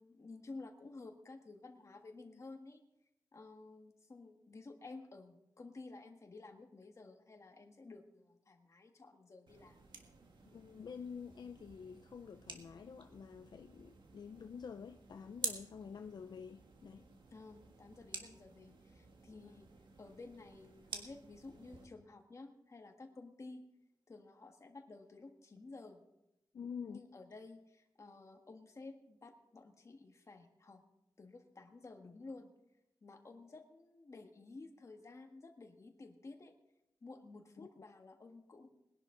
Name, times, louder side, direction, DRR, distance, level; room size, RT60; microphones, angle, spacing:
voice 1, 0.0-2.8 3.3-9.9 17.3-19.7 20.0-23.6 24.1-26.0 26.9-30.8 31.2-32.5 33.0-36.5 37.0-38.7, left 3 dB, 40° left, 1.6 m, -53 dB
sound 1, 9.5-21.9, right 4 dB, 85° right, 1.7 m, -50 dB
voice 2, 10.5-17.1 19.3-19.6 26.5-27.0 37.6-37.7, left 6 dB, 70° left, 0.5 m, -48 dB
20.5 x 11.0 x 3.9 m
wide cardioid pair, 145°, 8 cm